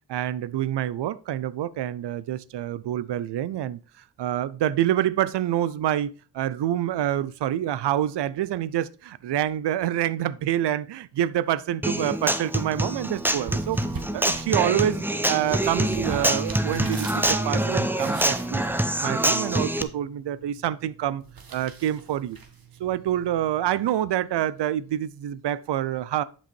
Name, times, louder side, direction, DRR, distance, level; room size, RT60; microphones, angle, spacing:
voice 1, 0.1-3.8 4.2-13.8 14.1-18.6 19.0-21.2 21.5-22.4 22.8-26.2, right 11 dB, 85° right, 0.5 m, -27 dB
Human voice / Acoustic guitar, 11.8-19.8, right 1 dB, 5° right, 0.7 m, -25 dB
sound 1, 12.7-23.7, right 5 dB, 60° right, 1.4 m, -43 dB
7.2 x 5.4 x 4.4 m
cardioid pair, 55°, 40 cm